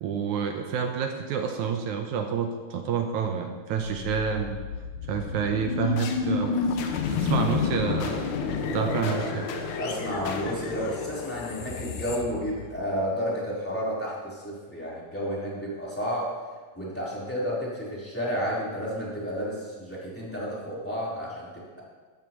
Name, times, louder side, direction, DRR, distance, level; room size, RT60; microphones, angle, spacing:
voice 1, 0.0-4.6 5.1-6.6 7.1-8.3 8.7-9.5, right 7 dB, 75° right, 4 dB, 1.9 m, -28 dB
sound 1, 4.0-13.0, left 5 dB, 70° left, 2.2 m, -30 dB
voice 2, 8.6-9.3 9.8-16.3 16.7-21.8, equal, 5° left, -8 dB, 3.1 m, -31 dB
13.0 x 12.5 x 3.0 m, 1.4 s
omnidirectional pair, 3.9 m